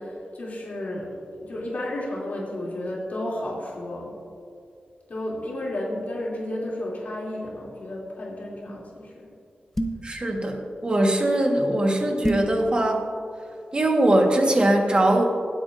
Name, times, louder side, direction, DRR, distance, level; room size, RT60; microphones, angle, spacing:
voice 1, 0.0-4.1 5.1-8.9 9.1-9.3, left 1 dB, 55° left, -5 dB, 3.0 m, -32 dB
sound 1, 9.8-10.2 12.2-12.6, right 1 dB, 15° left, 0.8 m, -26 dB
voice 2, 10.0-13.0 13.7-15.2, right 1 dB, 30° right, 2 dB, 1.5 m, -21 dB
25.0 x 8.5 x 2.6 m, 2.4 s
wide cardioid pair, 125°, 3 cm